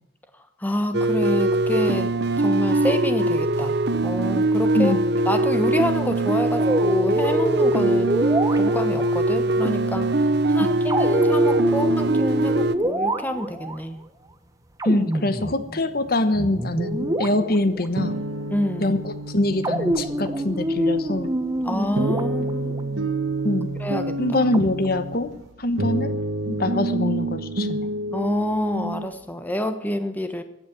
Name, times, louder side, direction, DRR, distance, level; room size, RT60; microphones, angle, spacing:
voice 1, 0.6-2.1 2.4-3.8 4.0-5.0 5.2-8.1 8.5-10.2 10.5-14.0 18.5-19.0 21.6-23.1 23.8-24.2 28.1-30.4, equal, 10° left, 8 dB, 1.2 m, -27 dB
sound 1, 0.9-12.7, right 2 dB, 55° right, 0.9 m, -22 dB
sound 2, 6.6-9.1 10.9-13.8 14.8-16.1 16.3-17.9 19.6-22.8 24.5-25.3, equal, 15° right, 1.1 m, -25 dB
voice 2, 14.8-18.2 18.8-21.3 23.4-23.7 24.2-27.9, left 1 dB, 50° left, 11 dB, 1.1 m, -24 dB
sound 3, 16.8-29.1, right 2 dB, 80° right, 1.6 m, -29 dB
15.5 x 9.6 x 9.5 m, 0.90 s
head